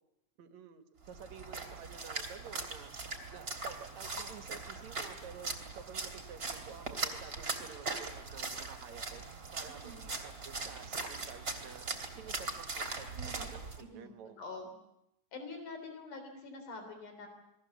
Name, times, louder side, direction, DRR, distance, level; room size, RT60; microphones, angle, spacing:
voice 1, 0.4-11.9 12.2-14.4, right 7 dB, 65° right, 7 dB, 2.7 m, -51 dB
Splash splatter, 1.1-13.8, right 3 dB, 30° right, 3.3 m, -40 dB
voice 2, 13.1-13.5 13.8-14.7 15.3-17.3, left 3 dB, 85° left, 5 dB, 5.3 m, -46 dB
29.0 x 21.5 x 7.2 m, 0.83 s
omnidirectional pair, 3.5 m